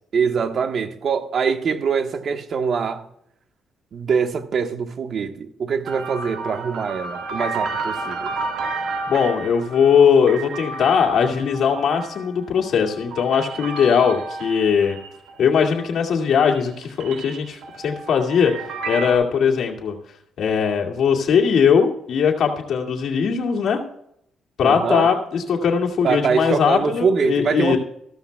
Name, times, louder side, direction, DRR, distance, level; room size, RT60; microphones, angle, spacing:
voice 1, 0.1-3.0 3.9-8.3 24.6-25.1 26.0-27.8, right 6 dB, 55° right, 1.3 m, -23 dB
sound 1, 5.8-16.1 16.3-19.1, right 3 dB, 80° right, 1.7 m, -32 dB
voice 2, 9.1-15.0 15.4-18.5 18.9-19.9 20.4-23.8 24.6-27.8, left 6 dB, 65° left, 2.3 m, -19 dB
14.5 x 13.0 x 2.3 m
cardioid pair, 90°, 0 cm